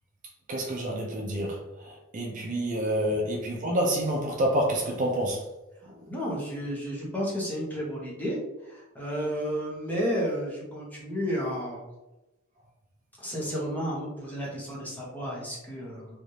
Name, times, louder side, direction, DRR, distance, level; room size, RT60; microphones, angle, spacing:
voice 1, 0.5-5.5 5.9-6.0, right 1 dB, 40° right, 0 dB, 0.4 m, -28 dB
voice 2, 6.1-11.9 13.2-16.2, equal, 10° left, -5 dB, 0.8 m, -32 dB
3.2 x 2.4 x 2.7 m, 0.99 s
head